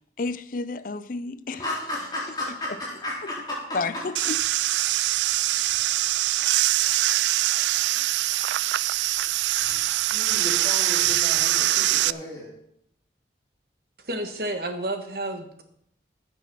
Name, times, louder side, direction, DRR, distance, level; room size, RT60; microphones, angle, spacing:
voice 1, 0.2-1.6 3.7-4.4, left 3 dB, 45° left, 0.5 m, -30 dB
voice 2, 1.5-4.0 10.1-12.5, left 1 dB, 20° left, 3.7 m, -34 dB
sound 1, 4.2-12.1, right 15 dB, 75° right, 0.3 m, -23 dB
voice 3, 14.0-15.6, right 1 dB, 55° right, 1.4 m, -30 dB
14.5 x 6.2 x 6.0 m
head